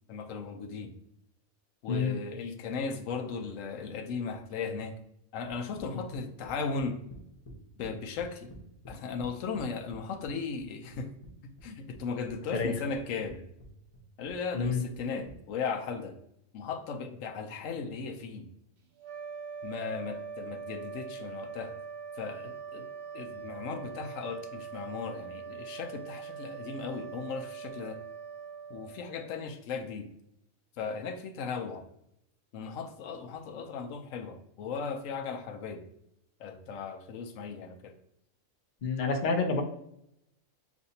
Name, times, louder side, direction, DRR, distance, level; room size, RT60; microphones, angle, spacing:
voice 1, 0.1-0.9 1.8-4.9 5.3-7.0 7.8-8.5 8.9-11.1 11.6-13.4 14.2-16.1 16.5-18.5 19.6-21.7 22.2-22.8 23.1-28.0 28.7-30.1 30.8-31.8 32.5-35.8 36.4-37.9, left 5 dB, 70° left, 5 dB, 0.9 m, -37 dB
sound 1, 5.5-7.9 8.2-10.0 10.2-11.3 11.6-12.7 12.9-13.3 13.6-15.3, equal, 25° left, 0.8 m, -49 dB
sound 2, 19.0-29.6, right 6 dB, 90° right, 0.4 m, -42 dB
voice 2, 38.8-39.6, left 4 dB, 55° left, 4 dB, 0.5 m, -28 dB
7.1 x 2.5 x 2.7 m, 0.77 s
omnidirectional pair, 1.4 m